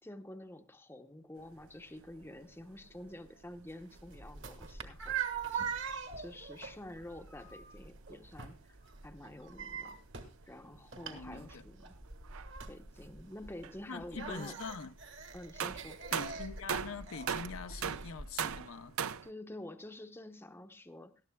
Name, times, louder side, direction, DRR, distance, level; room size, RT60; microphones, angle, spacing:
voice 1, 0.0-5.7 6.1-8.8 9.0-10.0 10.4-12.0 12.7-14.6 15.3-16.0 19.2-21.3, left 1 dB, 10° left, 0.7 m, -49 dB
sound 1, 1.4-19.3, right 8 dB, 75° right, 0.5 m, -45 dB
sound 2, 3.7-18.6, right 6 dB, 60° right, 1.5 m, -43 dB
voice 2, 11.1-11.6 13.9-14.9 16.1-19.0, left 5 dB, 70° left, 0.6 m, -44 dB
19.0 x 13.5 x 2.2 m
head